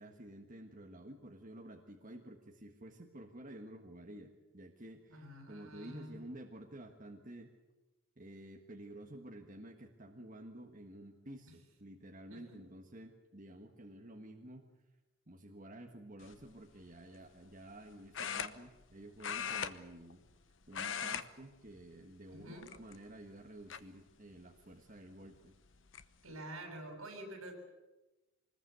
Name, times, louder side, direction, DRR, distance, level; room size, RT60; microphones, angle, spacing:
voice 1, 0.0-7.5 8.2-14.7 15.3-20.2 20.7-25.5, right 1 dB, 40° right, 2 dB, 1.6 m, -51 dB
voice 2, 5.1-6.2 12.3-12.6 22.3-22.7 26.2-27.6, right 1 dB, 75° right, 4 dB, 7.1 m, -48 dB
sound 1, 16.2-16.5 18.1-18.9 19.2-20.4 20.7-21.3 21.6-21.8 22.6-23.1 23.7-23.8 25.2-25.3 25.7-26.0, left 7 dB, 60° left, 1.0 m, -39 dB
25.0 x 20.0 x 8.2 m, 1.1 s
head